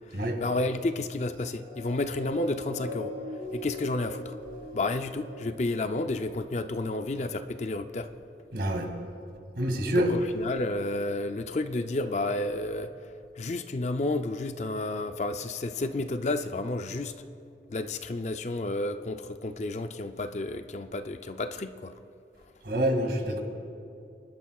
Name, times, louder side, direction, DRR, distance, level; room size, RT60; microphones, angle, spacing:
voice 1, 0.1-3.1 3.5-4.4 4.7-8.1 9.9-12.9 13.4-17.1 17.7-21.9, left 2 dB, 40° left, 9 dB, 0.4 m, -31 dB
sound 1, 1.3-7.9 8.6-8.7, left 1 dB, 50° right, 3.6 m, -42 dB
voice 2, 8.5-8.9 9.6-10.1 22.6-23.4, right 1 dB, 70° right, 3 dB, 2.2 m, -26 dB
28.0 x 12.0 x 2.4 m, 2.6 s
head